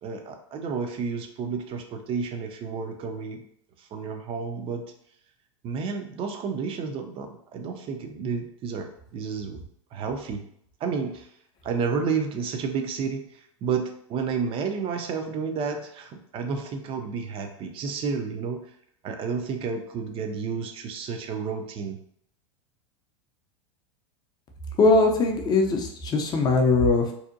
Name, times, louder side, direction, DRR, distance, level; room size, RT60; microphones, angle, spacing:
voice 1, 0.0-3.5 3.8-4.8 5.6-9.6 9.9-10.4 10.8-11.3 11.6-18.6 19.0-22.0, right 5 dB, 35° right, 5 dB, 0.4 m, -31 dB
voice 2, 24.8-27.1, left 3 dB, 25° left, 2 dB, 0.5 m, -21 dB
2.6 x 2.1 x 2.5 m, 0.69 s
hypercardioid pair, 100°, 16 cm